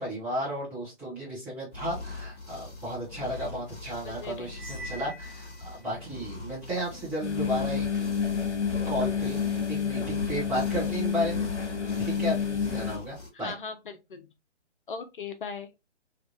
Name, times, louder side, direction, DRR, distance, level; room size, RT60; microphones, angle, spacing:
voice 1, 0.0-7.9 8.9-11.5 12.0-13.5, equal, 5° right, 0.6 m, -34 dB
sound 1, 1.7-13.3, left 3 dB, 10° left, 1.1 m, -41 dB
voice 2, 4.0-4.5 13.4-14.3 14.9-15.7, left 5 dB, 50° left, 0.5 m, -38 dB
Cymbal, 4.5-6.0, right 1 dB, 60° right, 1.1 m, -44 dB
sound 2, 7.2-13.0, left 6 dB, 85° left, 0.8 m, -29 dB
3.4 x 2.3 x 2.6 m
figure-of-eight pair, 135°, 34 cm